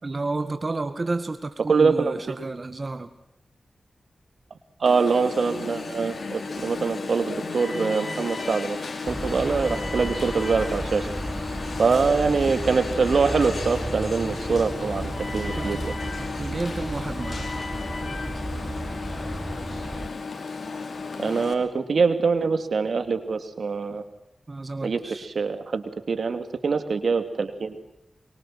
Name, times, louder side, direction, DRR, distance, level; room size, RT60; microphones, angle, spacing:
voice 1, 0.0-3.1 15.5-15.8 16.2-17.5 24.5-25.3, right 3 dB, 45° right, 9 dB, 1.9 m, -31 dB
voice 2, 1.7-2.2 4.8-8.8 9.1-11.1 11.8-15.8 21.2-24.0 24.8-27.8, right 4 dB, 75° right, 9 dB, 2.8 m, -24 dB
Alarm, 4.9-21.5, left 4 dB, 70° left, 4.7 m, -34 dB
sound 1, 9.1-20.1, right 1 dB, 15° right, 2.0 m, -33 dB
24.0 x 24.0 x 7.8 m, 0.82 s
cardioid pair, 55°, 0 cm